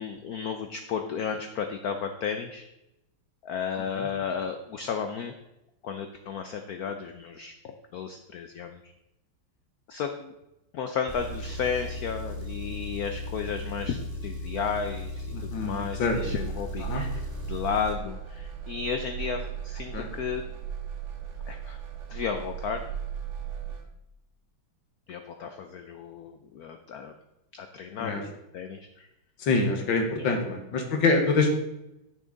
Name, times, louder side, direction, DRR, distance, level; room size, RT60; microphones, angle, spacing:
voice 1, 0.0-2.7 3.4-5.3 5.8-8.8 9.9-10.3 10.7-20.5 21.5-21.8 22.1-22.9 25.1-27.1 27.5-29.1 30.1-30.3, left 6 dB, 80° left, 7 dB, 0.8 m, -33 dB
Engine, 11.1-18.0, left 1 dB, 20° left, 0.6 m, -36 dB
voice 2, 15.3-16.2 16.8-17.0 19.9-20.1 28.0-28.2 29.4-31.5, left 3 dB, 65° left, 4 dB, 1.9 m, -25 dB
sound 1, 16.0-23.9, right 9 dB, 70° right, 2.0 m, -37 dB
10.5 x 6.1 x 3.9 m, 0.90 s
omnidirectional pair, 2.3 m